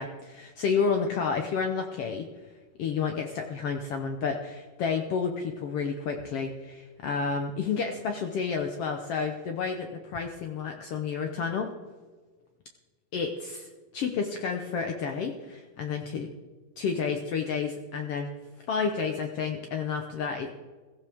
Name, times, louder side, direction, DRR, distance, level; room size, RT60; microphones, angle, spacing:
voice 1, 0.0-2.3 2.8-11.7 13.1-16.3 16.8-18.3 18.7-20.5, left 5 dB, 80° left, 4 dB, 1.3 m, -30 dB
16.5 x 14.5 x 3.5 m, 1.4 s
omnidirectional pair, 3.9 m